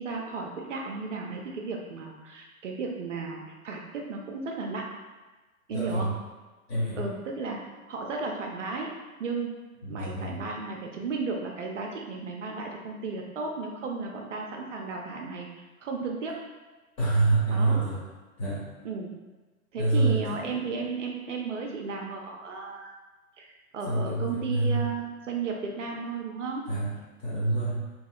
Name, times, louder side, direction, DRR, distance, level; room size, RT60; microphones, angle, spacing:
voice 1, 0.0-4.9 5.7-6.1 7.0-8.9 9.2-9.6 9.9-15.5 15.8-16.4 17.5-17.9 18.8-19.1 19.7-22.9 23.4-26.6, right 4 dB, 55° right, 0 dB, 0.5 m, -34 dB
voice 2, 5.7-6.1 6.7-7.0 9.8-10.4 17.0-18.0 18.4-18.6 19.8-20.2 23.9-24.8 26.7-26.9 27.2-27.8, right 2 dB, 20° left, -8 dB, 0.7 m, -26 dB
2.8 x 2.7 x 2.3 m, 1.2 s
figure-of-eight pair, 110°, 44 cm